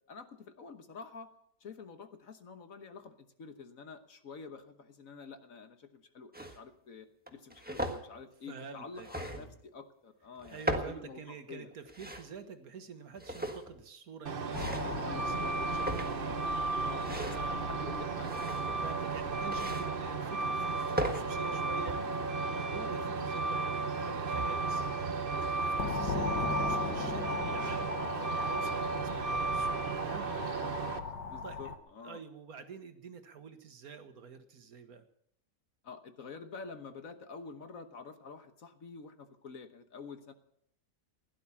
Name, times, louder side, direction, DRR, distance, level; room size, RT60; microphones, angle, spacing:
voice 1, 0.1-1.3 1.6-7.1 7.3-11.7 14.8-15.5 16.8-18.4 31.0-32.2 35.8-40.3, left 4 dB, 55° left, 8 dB, 1.5 m, -48 dB
sound 1, 6.3-6.6 7.3-8.0 9.0-9.6 10.4-11.0 11.7-12.3 13.1-13.8 14.5-15.0 15.6-16.3 16.9-17.5 18.2-18.9 19.5-19.9 20.6-21.2, right 1 dB, 5° right, 1.3 m, -37 dB
voice 2, 8.5-9.6 10.5-17.8 18.8-28.0 28.3-30.7 31.0-31.1 31.4-31.7 32.0-35.1, right 6 dB, 60° right, 9 dB, 1.6 m, -48 dB
Truck, 14.3-31.0, right 3 dB, 40° right, 0.9 m, -34 dB
sound 2, 14.5-31.8, left 5 dB, 85° left, 2.1 m, -41 dB
16.5 x 11.5 x 7.1 m, 0.70 s
omnidirectional pair, 1.8 m